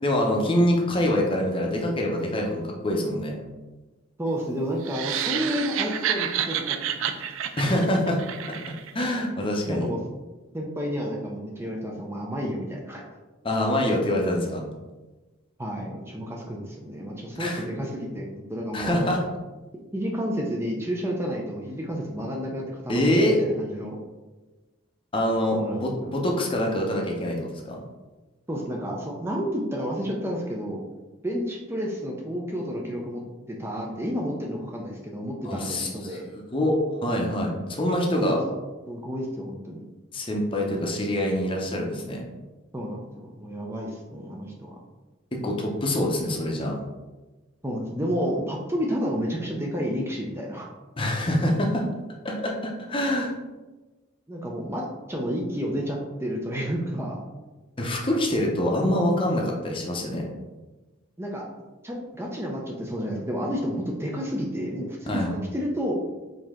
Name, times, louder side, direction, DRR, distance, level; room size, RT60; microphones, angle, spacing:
voice 1, 0.0-3.3 7.6-8.2 8.6-9.9 13.4-14.7 17.4-17.6 18.7-19.2 22.9-23.4 25.1-27.8 35.4-36.2 36.5-36.7 37.0-38.4 40.1-42.2 45.3-46.7 51.0-51.8 52.2-53.3 57.8-60.3 65.1-65.3, left 1 dB, 25° left, 0 dB, 0.7 m, -25 dB
voice 2, 4.2-7.1 7.7-7.9 9.7-10.0 10.5-13.1 15.6-19.1 19.9-24.0 25.5-26.1 28.5-30.8 31.2-33.2 33.5-36.3 38.1-38.4 38.9-39.8 42.7-44.8 47.6-50.7 54.3-57.2 61.2-61.5 61.8-65.9, equal, 15° right, -1 dB, 0.5 m, -31 dB
sound 1, 4.8-9.1, right 9 dB, 85° right, 0.4 m, -29 dB
5.2 x 2.8 x 3.6 m, 1.2 s
head